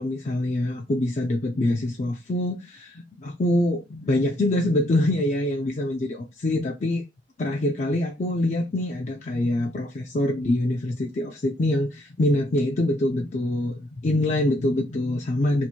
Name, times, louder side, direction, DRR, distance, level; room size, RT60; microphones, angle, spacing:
voice 1, 0.0-7.0 7.4-15.7, left 1 dB, 40° left, 0.4 m, -25 dB
2.8 x 2.6 x 4.3 m
head